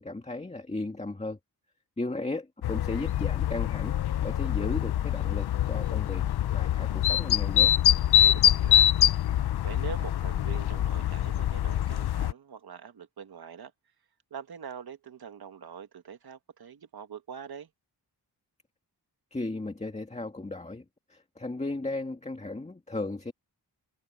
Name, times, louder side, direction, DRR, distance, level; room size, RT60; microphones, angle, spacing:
voice 1, 0.0-1.4 2.0-7.7 19.3-20.8 21.1-23.3, left 2 dB, 15° left, 2.0 m, -35 dB
sound 1, 2.6-12.3, left 11 dB, 70° left, 0.6 m, -25 dB
voice 2, 8.1-8.9 9.6-13.7 14.3-17.7, right 7 dB, 65° right, 1.9 m, -43 dB
wide cardioid pair, 155°, 40 cm